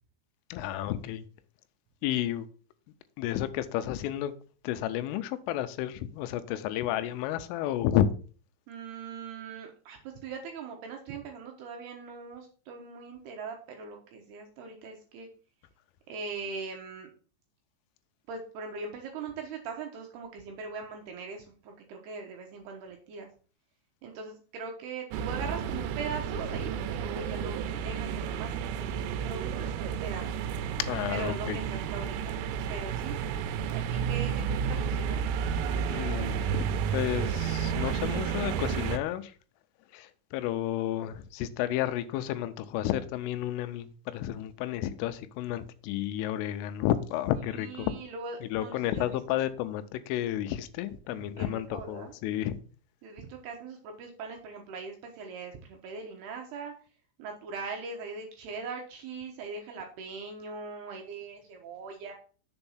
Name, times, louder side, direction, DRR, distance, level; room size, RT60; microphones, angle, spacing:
voice 1, 0.5-1.2 2.0-2.5 3.2-4.3 4.6-8.1 30.8-31.6 35.9-39.3 39.9-47.9 48.4-52.6, left 12 dB, 90° left, 3.2 m, -31 dB
voice 2, 8.7-15.3 16.1-17.1 18.3-23.3 24.0-30.4 31.1-32.4 32.7-33.2 33.7-35.3 47.3-49.5 51.1-52.1 53.0-56.7 57.2-62.1, right 4 dB, 70° right, 2.6 m, -41 dB
sound 1, 25.1-39.0, right 7 dB, 90° right, 3.3 m, -31 dB
7.0 x 4.4 x 5.6 m
omnidirectional pair, 5.6 m